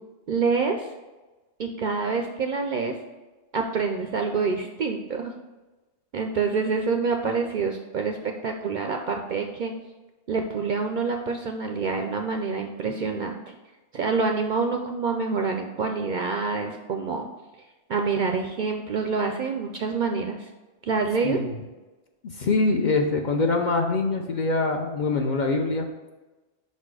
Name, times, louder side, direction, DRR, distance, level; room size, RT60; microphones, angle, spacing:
voice 1, 0.3-0.9 1.6-2.9 3.5-5.3 6.1-9.7 10.3-13.6 13.9-17.3 17.9-20.5 20.8-21.4, right 4 dB, 60° right, 4 dB, 0.5 m, -27 dB
voice 2, 22.2-25.9, left 3 dB, 50° left, 3 dB, 0.6 m, -24 dB
5.4 x 4.2 x 4.7 m, 1.2 s
omnidirectional pair, 1.2 m